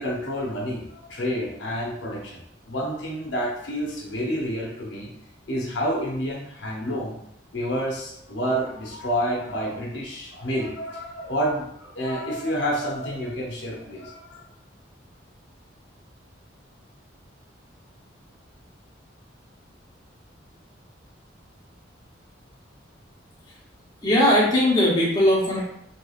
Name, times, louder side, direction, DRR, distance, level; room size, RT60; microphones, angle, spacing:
voice 1, 0.0-5.1 5.5-7.2 7.5-14.4, equal, 70° left, -3 dB, 0.7 m, -29 dB
voice 2, 24.0-25.6, left 1 dB, 20° left, -6 dB, 0.7 m, -19 dB
3.0 x 2.9 x 2.4 m, 0.73 s
head